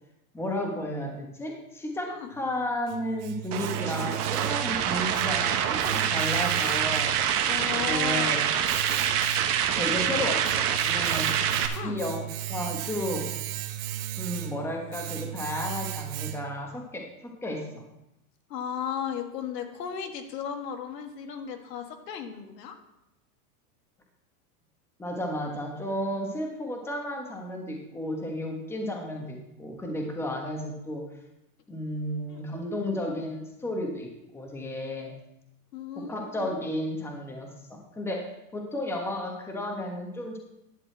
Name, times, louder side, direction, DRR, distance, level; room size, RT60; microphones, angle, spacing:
voice 1, 0.3-7.1 7.7-8.4 9.8-11.3 11.8-13.3 14.1-17.8 25.0-31.0 31.7-35.1 36.0-40.4, left 1 dB, 5° left, 1 dB, 1.3 m, -33 dB
Domestic sounds home sounds, 2.3-16.7, right 13 dB, 35° right, 0.6 m, -37 dB
sound 1, 3.5-11.7, right 9 dB, 70° right, 1.3 m, -26 dB
voice 2, 7.5-8.4 11.7-12.0 18.5-22.7 32.3-32.5 35.7-36.5, left 8 dB, 85° left, 5 dB, 1.7 m, -35 dB
11.0 x 4.1 x 7.8 m, 0.86 s
supercardioid pair, 150°, 48 cm